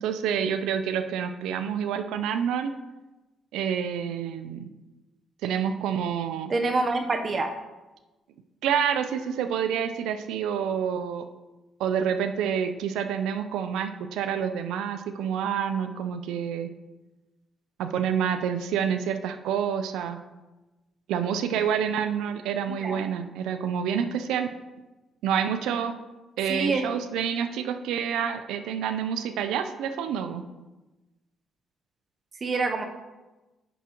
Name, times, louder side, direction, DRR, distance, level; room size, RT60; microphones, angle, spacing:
voice 1, 0.0-2.7 3.5-4.7 5.4-6.5 8.6-11.2 11.8-16.7 17.8-20.2 21.1-24.5 25.2-25.9 26.4-30.4, right 8 dB, 90° right, 9 dB, 0.5 m, -28 dB
voice 2, 6.5-7.5 22.7-23.0 26.5-26.9 32.4-32.8, right 3 dB, 40° right, 5 dB, 0.7 m, -26 dB
9.2 x 6.1 x 2.9 m, 1.1 s
cardioid pair, 90°, 0 cm